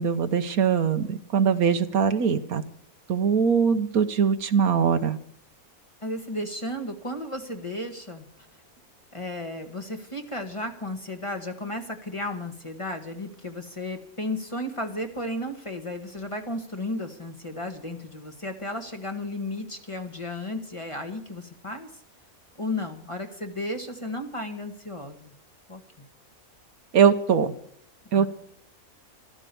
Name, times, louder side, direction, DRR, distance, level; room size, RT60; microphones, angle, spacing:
voice 1, 0.0-2.6 3.1-5.2 26.9-27.5 28.1-28.3, right 7 dB, 70° right, 10 dB, 1.4 m, -22 dB
voice 2, 6.0-8.3 9.1-21.9 22.6-25.3 25.7-25.8 28.1-28.3, left 1 dB, 20° left, 5 dB, 1.5 m, -34 dB
14.0 x 13.0 x 6.9 m, 0.66 s
omnidirectional pair, 1.6 m